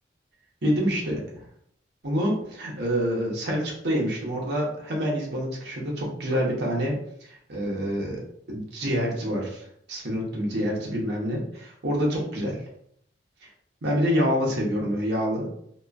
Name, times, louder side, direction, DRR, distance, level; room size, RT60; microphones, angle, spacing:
voice 1, 0.6-1.2 2.0-8.2 8.5-12.6 13.4-13.5 13.8-15.5, equal, 65° right, -2 dB, 0.8 m, -27 dB
2.9 x 2.2 x 2.4 m, 0.67 s
head